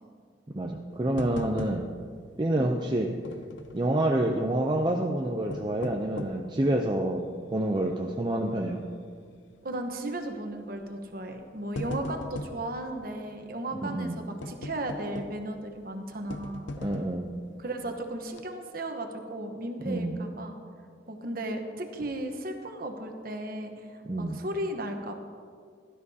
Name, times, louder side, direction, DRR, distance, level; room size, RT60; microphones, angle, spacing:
voice 1, 0.5-1.9 2.4-3.2 3.7-8.9 13.8-14.2 16.8-17.3 19.8-20.1 24.1-24.4, right 1 dB, 25° right, 1 dB, 0.5 m, -28 dB
sound 1, 1.2-2.1 2.4-2.5 3.2-3.9 5.3-6.5 7.1-7.2 7.8-8.1 8.4-8.5 9.6-9.9 10.8-11.0 11.4-12.7 14.4-15.5 16.3-17.3 17.8-17.9 18.3-18.4, left 1 dB, 80° left, 0.6 m, -38 dB
voice 2, 9.6-16.7 17.6-20.5 21.1-25.2, right 1 dB, 50° right, 4 dB, 1.1 m, -35 dB
17.0 x 12.0 x 2.8 m, 2.1 s
head